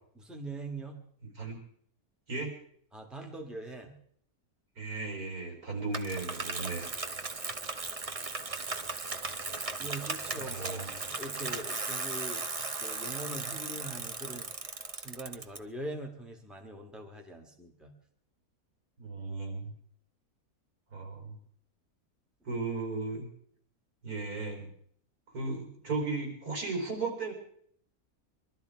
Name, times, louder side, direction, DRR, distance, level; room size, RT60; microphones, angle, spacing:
voice 1, 0.2-1.0 2.9-4.0 9.8-14.5 14.9-17.9, right 1 dB, ahead, 1 dB, 1.9 m, -42 dB
voice 2, 4.8-6.9 10.3-10.9 19.0-19.7 20.9-21.4 22.4-23.3 24.0-24.7 25.3-27.3, right 3 dB, 80° right, 2 dB, 4.5 m, -35 dB
Bicycle, 5.9-15.6, right 4 dB, 35° right, 0.6 m, -37 dB
22.5 x 12.5 x 4.7 m, 0.64 s
omnidirectional pair, 1.6 m